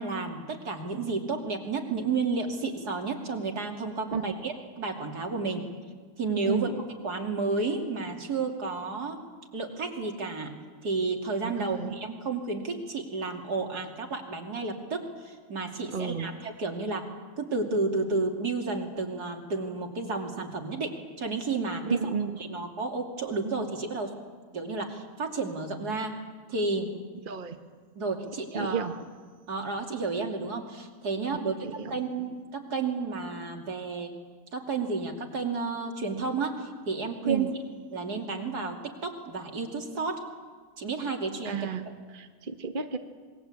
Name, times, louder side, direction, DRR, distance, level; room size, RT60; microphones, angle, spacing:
voice 1, 0.0-5.7 6.2-6.7 7.0-9.2 9.5-10.5 10.8-17.1 17.4-21.8 22.4-24.1 24.5-26.1 26.5-26.9 27.9-28.9 29.5-34.1 34.5-37.5 37.9-40.2 40.8-41.7, right 3 dB, 75° right, 3 dB, 3.2 m, -31 dB
voice 2, 11.4-11.9 15.9-16.3 21.9-22.4 27.3-27.6 28.5-28.9 31.5-32.0 37.2-37.5 41.4-41.8 42.1-43.0, right 5 dB, 35° right, 7 dB, 1.3 m, -32 dB
27.0 x 21.5 x 8.5 m, 1.5 s
omnidirectional pair, 1.7 m